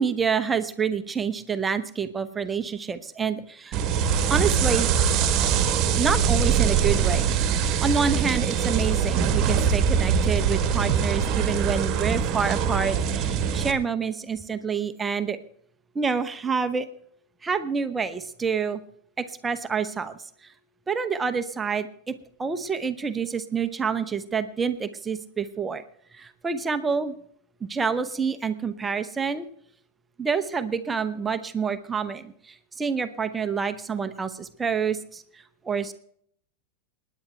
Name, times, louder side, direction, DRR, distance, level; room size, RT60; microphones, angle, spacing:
voice 1, 0.0-3.8 4.3-4.9 6.0-15.4 15.9-16.9 17.4-18.8 19.2-20.5 20.9-22.1 22.4-25.8 26.1-27.1 27.7-29.5 30.2-35.9, right 6 dB, 15° right, 9 dB, 0.9 m, -28 dB
sound 1, 3.7-13.7, right 7 dB, 35° right, 1.5 m, -23 dB
27.5 x 10.0 x 3.4 m, 0.66 s
figure-of-eight pair, 90°, 0 cm